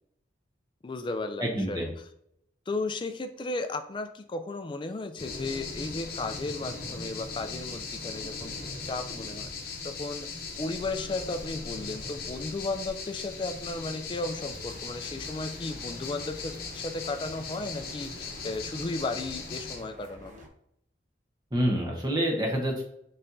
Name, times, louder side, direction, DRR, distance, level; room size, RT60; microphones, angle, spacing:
voice 1, 0.8-1.8 2.7-8.5 8.8-20.4, left 2 dB, 25° left, 7 dB, 0.3 m, -35 dB
voice 2, 1.4-1.9 21.5-22.8, equal, 20° right, -1 dB, 1.0 m, -27 dB
sound 1, 5.2-19.8, left 4 dB, 55° left, 0.8 m, -39 dB
sound 2, 14.3-20.5, right 1 dB, 45° right, 0.7 m, -48 dB
4.2 x 4.2 x 2.6 m, 0.74 s
head